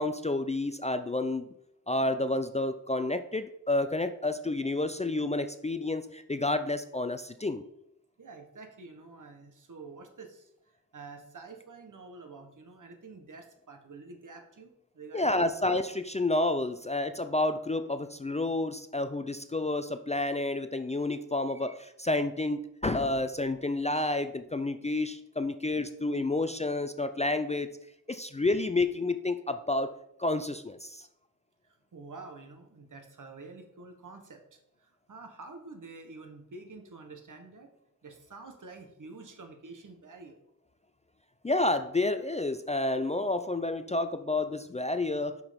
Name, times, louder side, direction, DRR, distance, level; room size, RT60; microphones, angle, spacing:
voice 1, 0.0-1.4 1.9-7.6 15.1-27.7 28.1-29.9 30.2-31.1 41.4-45.4, left 2 dB, 20° left, 10 dB, 0.3 m, -30 dB
voice 2, 8.2-10.5 10.9-15.4 31.6-37.7 38.0-40.3, right 3 dB, 65° right, 5 dB, 1.3 m, -48 dB
6.2 x 5.8 x 5.1 m, 0.76 s
wide cardioid pair, 110°, 33 cm